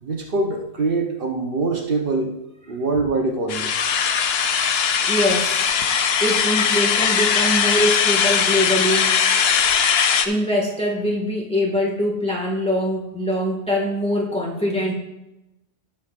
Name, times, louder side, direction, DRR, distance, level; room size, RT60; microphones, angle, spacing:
voice 1, 0.0-2.3 2.7-3.8, right 3 dB, 60° right, 2 dB, 1.1 m, -24 dB
sound 1, 3.5-10.3, left 7 dB, 70° left, 0.9 m, -20 dB
voice 2, 5.0-5.7 6.2-9.1 10.2-14.9, equal, 5° left, -2 dB, 1.7 m, -23 dB
17.5 x 6.3 x 2.5 m, 0.94 s
omnidirectional pair, 1.1 m